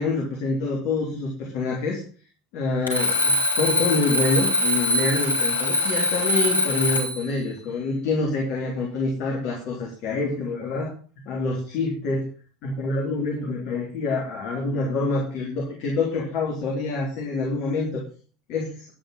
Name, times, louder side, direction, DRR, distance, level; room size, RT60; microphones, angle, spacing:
voice 1, 0.0-2.0 2.5-10.9 11.2-12.3 12.6-18.0 18.5-18.8, left 3 dB, 50° left, -1 dB, 3.5 m, -26 dB
Alarm, 2.9-7.3, left 2 dB, 85° left, 3.4 m, -23 dB
11.0 x 9.0 x 5.6 m, 0.41 s
figure-of-eight pair, 70°, 0 cm